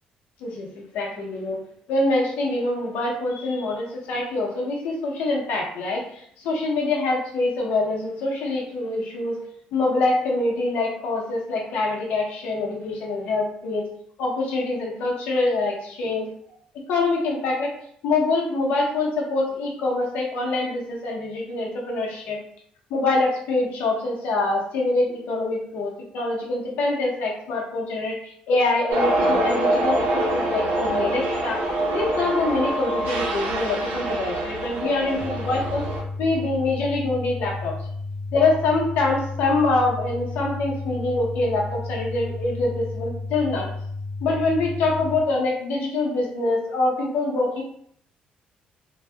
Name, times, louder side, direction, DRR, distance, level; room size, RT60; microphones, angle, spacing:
voice 1, 0.9-1.6 1.9-9.4 9.7-13.9 14.2-16.3 16.9-17.7 18.0-22.4 22.9-30.1 30.3-31.6 31.9-35.8 36.2-37.7 38.3-43.7 44.2-47.6, left 2 dB, 85° left, -2 dB, 0.7 m, -25 dB
sound 1, 28.9-36.0, right 1 dB, 80° right, 0.6 m, -25 dB
sound 2, 35.2-45.2, left 3 dB, 25° right, 0.4 m, -33 dB
2.6 x 2.2 x 2.2 m, 0.66 s
cardioid pair, 180°, 3 cm